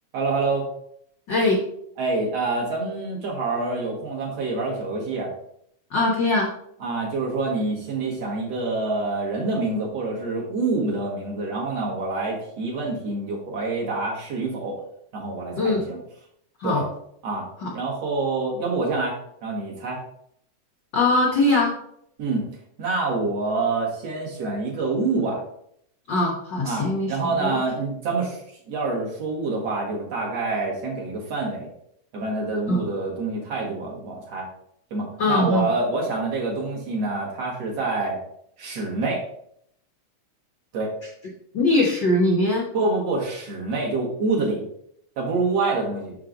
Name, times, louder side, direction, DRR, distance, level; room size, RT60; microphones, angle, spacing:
voice 1, 0.1-0.7 2.0-5.3 6.8-14.8 15.1-16.0 16.6-16.9 17.2-17.5 17.7-20.0 22.2-22.5 22.8-25.4 26.6-31.7 32.1-34.5 34.9-38.2 38.6-39.2 40.7-40.9 42.7-44.7 45.2-46.2, right 3 dB, 55° right, -2 dB, 2.6 m, -26 dB
voice 2, 1.3-1.6 5.9-6.5 15.6-15.8 16.6-16.8 17.6-17.7 20.9-21.7 26.1-27.1 27.4-27.6 32.7-32.8 35.2-35.7 41.5-42.7, left 2 dB, 70° left, -1 dB, 1.0 m, -21 dB
6.7 x 5.8 x 3.8 m, 0.70 s
omnidirectional pair, 3.5 m